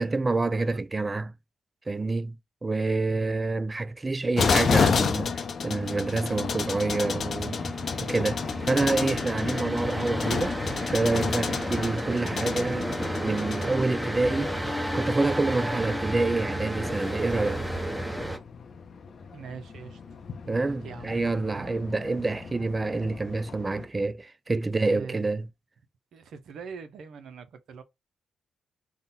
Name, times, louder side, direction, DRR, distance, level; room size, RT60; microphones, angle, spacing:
voice 1, 0.0-1.3 1.9-2.3 2.6-7.6 8.0-10.6 10.9-12.9 13.2-14.6 14.9-17.6 20.5-25.5, right 3 dB, 25° right, 0.4 m, -27 dB
voice 2, 3.1-3.4 11.5-11.7 19.3-20.2 20.4-21.7 24.9-25.3 26.1-27.8, right 6 dB, 70° right, 0.6 m, -43 dB
sound 1, 4.4-23.9, left 5 dB, 55° left, 0.6 m, -32 dB
sound 2, 5.7-18.4, equal, 5° right, 0.8 m, -32 dB
3.7 x 2.2 x 4.0 m
supercardioid pair, 65°, 0 cm